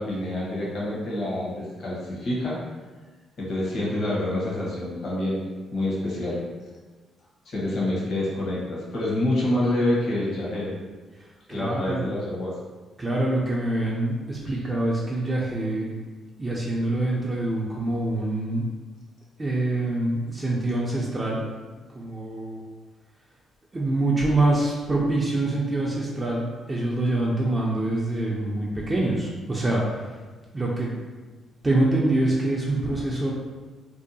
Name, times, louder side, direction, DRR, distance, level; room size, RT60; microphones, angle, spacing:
voice 1, 0.0-2.6 3.4-6.4 7.4-10.7 11.5-12.5 14.5-14.6, left 1 dB, 60° left, -6 dB, 0.9 m, -27 dB
voice 2, 11.2-12.2 13.0-15.9 16.4-18.7 19.4-21.4 21.9-22.6 23.7-30.2 30.5-30.9 31.6-33.3, right 2 dB, 25° right, -4 dB, 0.4 m, -25 dB
2.6 x 2.2 x 2.6 m, 1.3 s
cardioid pair, 90°, 0 cm